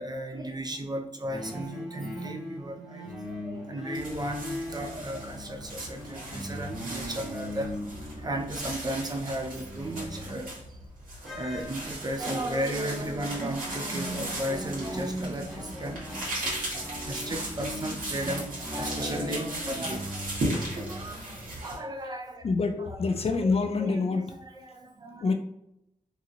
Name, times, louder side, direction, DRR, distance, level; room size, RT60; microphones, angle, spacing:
voice 1, 0.0-7.7 8.2-10.8 11.3-20.3 20.9-22.5 22.8-23.0 23.4-23.5 23.8-25.3, right 1 dB, 30° right, 3 dB, 0.5 m, -35 dB
sound 1, 1.3-8.8 9.2-10.7 11.3-21.0, left 1 dB, ahead, 0.8 m, -39 dB
sound 2, 3.9-21.8, right 1 dB, 80° right, 1.3 m, -37 dB
voice 2, 22.4-24.4 25.2-25.3, left 4 dB, 45° left, 6 dB, 0.4 m, -26 dB
2.8 x 2.8 x 2.5 m, 0.80 s
cardioid pair, 45°, 14 cm